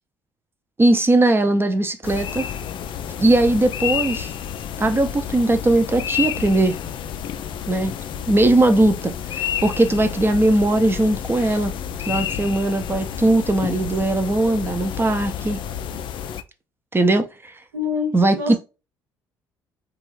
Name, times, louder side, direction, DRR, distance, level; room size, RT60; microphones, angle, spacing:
voice 1, 0.8-2.5 3.2-4.3 4.8-6.8 7.7-7.9 8.3-11.7 12.0-15.6 16.9-17.5 18.1-18.5, right 2 dB, 20° right, 0.6 m, -19 dB
sound 1, 2.0-16.4, left 9 dB, 50° left, 0.4 m, -30 dB
voice 2, 17.7-18.5, left 5 dB, 85° right, 0.6 m, -27 dB
2.9 x 2.4 x 3.2 m
hypercardioid pair, 50°, 11 cm